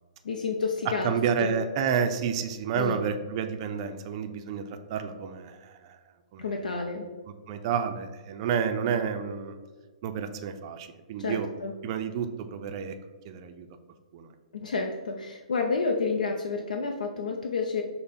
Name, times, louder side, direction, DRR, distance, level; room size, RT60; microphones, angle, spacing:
voice 1, 0.2-1.1 1.4-1.5 2.7-3.0 6.4-7.1 11.2-11.7 14.5-17.8, left 4 dB, 80° left, 2 dB, 0.5 m, -30 dB
voice 2, 1.0-6.0 6.3-6.9 7.5-9.5 10.0-11.5 11.8-13.0 13.2-13.7 14.1-14.3, right 7 dB, 40° right, 7 dB, 0.4 m, -30 dB
5.4 x 2.1 x 4.0 m, 1.4 s
hypercardioid pair, 135°, 4 cm